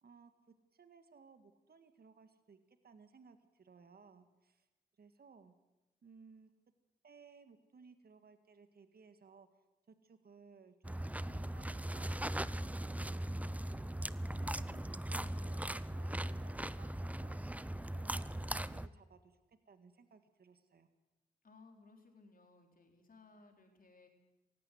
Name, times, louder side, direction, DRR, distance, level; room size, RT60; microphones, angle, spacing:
voice 1, 0.0-4.7 5.0-5.5 6.0-6.5 7.0-12.1 12.5-13.0 13.3-17.4 17.9-20.9, right 5 dB, 60° right, 9 dB, 1.9 m, -61 dB
sound 1, 10.8-18.9, right 1 dB, 10° right, 0.8 m, -39 dB
voice 2, 21.4-24.1, left 3 dB, 50° left, 3 dB, 4.6 m, -61 dB
18.5 x 15.5 x 9.5 m, 0.99 s
supercardioid pair, 45°, 18 cm